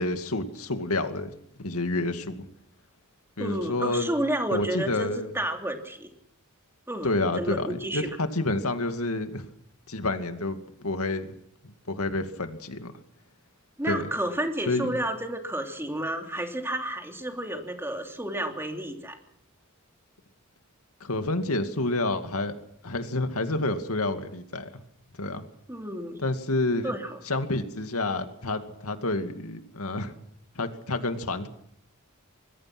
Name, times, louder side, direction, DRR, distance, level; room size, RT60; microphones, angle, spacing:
voice 1, 0.0-1.3 1.6-2.5 3.4-4.1 4.5-5.3 7.0-9.5 9.9-11.3 11.9-12.9 13.9-14.1 14.7-15.0 21.0-22.5 22.8-24.7 25.2-25.4 26.2-26.9 27.3-30.1 30.6-31.5, left 2 dB, 80° left, 8 dB, 2.4 m, -29 dB
voice 2, 3.4-6.1 6.9-8.1 13.8-19.2 25.7-26.2 26.8-27.2, right 1 dB, 10° right, 4 dB, 3.1 m, -31 dB
25.0 x 21.5 x 6.2 m, 0.73 s
head